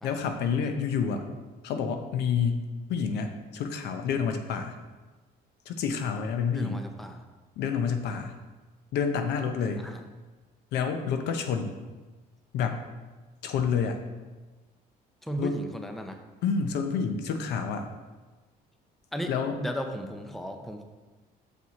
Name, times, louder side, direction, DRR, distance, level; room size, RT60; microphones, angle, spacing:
voice 1, 0.0-1.2 1.6-4.8 5.7-6.8 7.6-8.4 8.9-9.9 10.7-11.8 12.5-12.9 13.4-14.0 15.4-15.6 16.4-17.9 19.3-19.6, left 6 dB, 80° left, 6 dB, 0.7 m, -29 dB
voice 2, 6.5-7.2 9.8-10.0 15.2-16.2 19.1-19.3 19.6-20.8, equal, ahead, 5 dB, 0.6 m, -35 dB
7.0 x 4.7 x 4.1 m, 1.2 s
cardioid pair, 110°, 17 cm